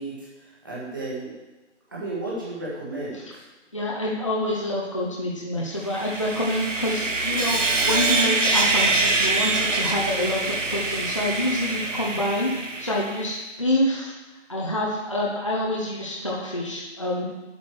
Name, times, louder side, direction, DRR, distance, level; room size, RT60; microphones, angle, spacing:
voice 1, 0.0-1.3 1.9-3.4, right 2 dB, 15° right, -7 dB, 1.8 m, -33 dB
voice 2, 3.7-14.1 14.5-17.3, left 1 dB, 25° left, -4 dB, 0.9 m, -27 dB
Sawing, 5.9-13.3, right 3 dB, 85° right, 1.5 m, -25 dB
9.5 x 8.5 x 4.7 m, 1.1 s
figure-of-eight pair, 175°, 37 cm